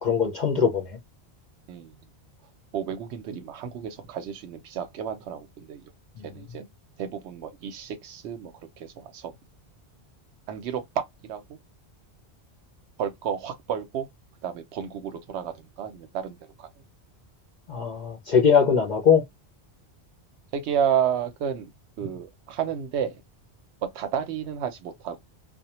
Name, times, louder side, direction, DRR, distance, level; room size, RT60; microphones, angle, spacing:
voice 1, 0.0-0.9 6.2-6.3 17.7-19.2, left 6 dB, 55° left, 0.5 m, -21 dB
voice 2, 2.7-5.9 6.2-6.6 7.0-9.4 10.5-11.4 13.0-14.1 14.4-16.7 20.5-21.7 22.0-23.2 23.8-25.2, right 8 dB, 85° right, 0.9 m, -31 dB
2.2 x 2.1 x 2.8 m
omnidirectional pair, 1.1 m